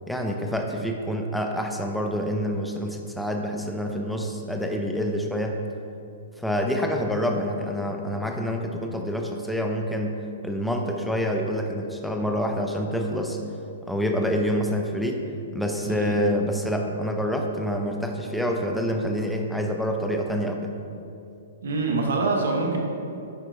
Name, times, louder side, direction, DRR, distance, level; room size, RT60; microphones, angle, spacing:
voice 1, 0.1-5.6 6.4-13.4 13.9-15.3 15.5-20.7, equal, ahead, 2 dB, 0.5 m, -27 dB
voice 2, 15.8-16.1 21.6-22.8, right 3 dB, 80° right, 1 dB, 1.1 m, -25 dB
9.8 x 3.8 x 3.1 m, 2.7 s
hypercardioid pair, 150°, 0 cm